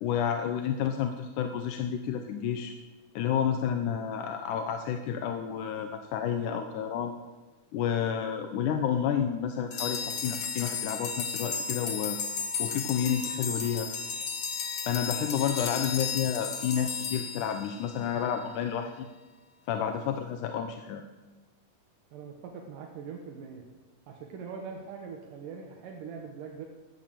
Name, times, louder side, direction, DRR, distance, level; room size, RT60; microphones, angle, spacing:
voice 1, 0.0-2.7 3.2-7.1 7.7-12.2 12.6-13.9 14.9-19.1 19.7-21.1, left 8 dB, 75° left, 6 dB, 2.3 m, -30 dB
sound 1, 9.7-18.2, left 6 dB, 50° left, 1.5 m, -34 dB
voice 2, 22.1-23.6 24.1-26.7, right 6 dB, 80° right, 1 dB, 2.9 m, -42 dB
15.0 x 12.5 x 7.5 m, 1.2 s
omnidirectional pair, 3.7 m